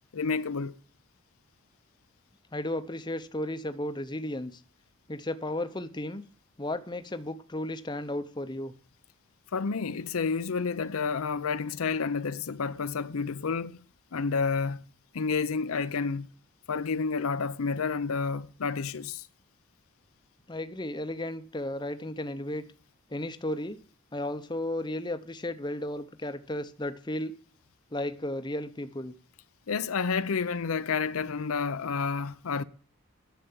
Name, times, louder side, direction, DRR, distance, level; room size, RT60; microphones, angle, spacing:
voice 1, 0.1-0.7 9.5-13.8 14.1-14.8 15.1-16.3 16.7-19.2 29.7-32.6, left 5 dB, 90° left, 0.6 m, -30 dB
voice 2, 2.5-4.6 5.1-6.2 6.6-8.7 20.5-22.6 23.1-23.8 24.1-27.3 27.9-29.1, left 1 dB, 20° left, 0.7 m, -34 dB
10.5 x 6.9 x 8.6 m
head